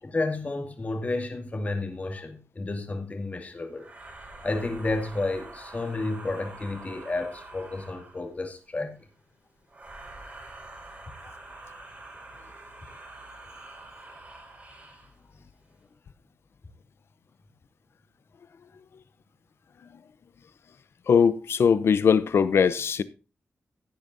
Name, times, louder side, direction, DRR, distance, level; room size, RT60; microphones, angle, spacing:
voice 1, 0.0-3.9 4.4-9.0, left 2 dB, 35° left, 2.2 m, -31 dB
sound 1, 3.8-8.3 9.7-15.2, right 2 dB, 35° right, 4.8 m, -46 dB
voice 2, 21.1-23.0, left 6 dB, 65° left, 0.7 m, -21 dB
16.0 x 9.1 x 2.6 m
wide cardioid pair, 125°, 4 cm